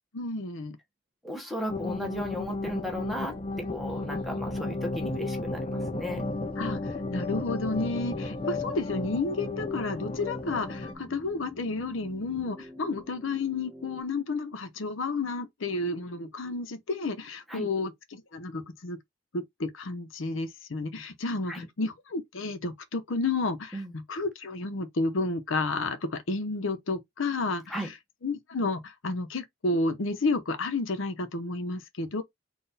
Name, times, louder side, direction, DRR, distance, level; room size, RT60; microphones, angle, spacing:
voice 1, 0.1-0.8 6.6-19.0 19.3-28.0 28.2-32.2, left 3 dB, 80° left, 0.7 m, -31 dB
voice 2, 1.2-6.3 17.5-17.7 21.5-21.7 23.7-23.9 27.7-27.9, equal, ahead, 1.0 m, -35 dB
sound 1, 1.7-10.9, left 2 dB, 25° left, 0.4 m, -33 dB
sound 2, 8.1-14.0, left 1 dB, 30° right, 1.6 m, -48 dB
4.0 x 2.4 x 4.0 m
head